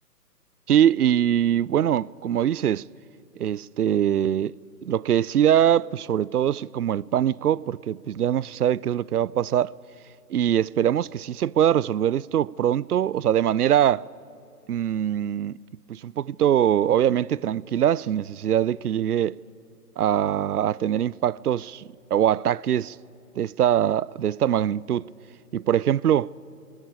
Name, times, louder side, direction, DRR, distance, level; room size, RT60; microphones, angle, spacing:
voice 1, 0.7-2.8 3.4-4.5 4.8-9.7 10.3-14.1 14.7-15.6 15.9-19.4 20.0-21.8 22.1-23.0 23.4-25.1 25.5-26.3, right 10 dB, 70° right, 0.5 m, -22 dB
23.0 x 20.0 x 8.7 m
figure-of-eight pair, 140°, 48 cm